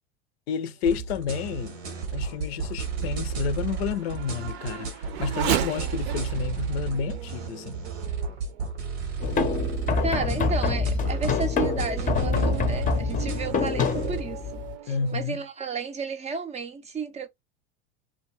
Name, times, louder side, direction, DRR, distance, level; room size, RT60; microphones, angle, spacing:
voice 1, 0.5-1.8 2.1-7.9 14.9-15.4, left 6 dB, 70° left, 0.5 m, -30 dB
sound 1, 0.8-14.2, right 6 dB, 90° right, 1.0 m, -33 dB
Race car auto racing / Accelerating revving vroom, 1.2-9.1 9.7-9.8 10.4-15.2, right 11 dB, 70° right, 0.6 m, -36 dB
sound 2, 9.2-14.7, left 5 dB, 25° left, 0.6 m, -26 dB
voice 2, 10.0-17.3, right 5 dB, 20° right, 0.5 m, -33 dB
2.6 x 2.2 x 3.0 m
hypercardioid pair, 85°, 32 cm